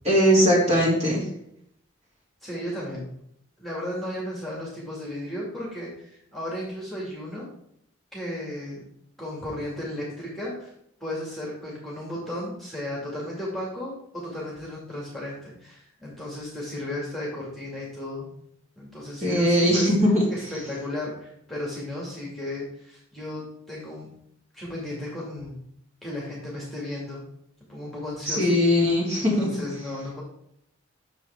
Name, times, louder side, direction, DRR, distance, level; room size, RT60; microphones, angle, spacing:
voice 1, 0.0-1.2 19.2-20.2 28.3-29.5, equal, 35° right, -4 dB, 3.1 m, -20 dB
voice 2, 2.4-3.1 3.6-7.5 8.1-8.8 9.2-10.7 11.0-18.4 18.8-19.9 20.3-24.1 24.5-25.6 26.0-27.3 27.7-28.5 29.2-30.2, left 1 dB, ahead, -5 dB, 2.2 m, -34 dB
9.1 x 6.6 x 3.5 m, 0.73 s
head